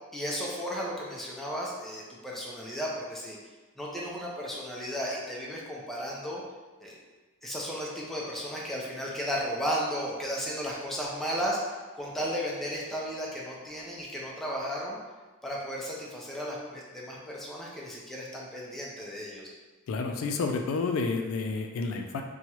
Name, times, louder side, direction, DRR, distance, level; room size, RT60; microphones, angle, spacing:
voice 1, 0.1-3.4 3.8-6.4 6.8-7.0 7.4-15.0 15.4-19.5, equal, ahead, -4 dB, 0.5 m, -34 dB
voice 2, 19.9-22.2, left 4 dB, 75° left, 5 dB, 0.3 m, -30 dB
2.9 x 2.3 x 2.8 m, 1.3 s
head